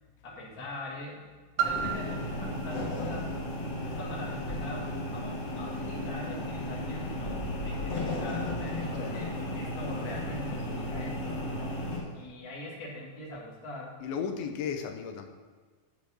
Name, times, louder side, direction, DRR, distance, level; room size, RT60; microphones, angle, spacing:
voice 1, 0.2-1.3 1.6-3.3 3.8-11.4 12.1-14.0, left 2 dB, 35° left, -4 dB, 1.6 m, -42 dB
sound 1, 1.6-12.0, left 1 dB, 55° left, 3.1 m, -34 dB
Piano, 1.6-7.0 7.7-7.8, right 8 dB, 70° right, 2.0 m, -38 dB
voice 2, 14.0-15.3, left 6 dB, 85° left, 5 dB, 2.6 m, -34 dB
10.0 x 5.1 x 6.1 m, 1.5 s
omnidirectional pair, 4.3 m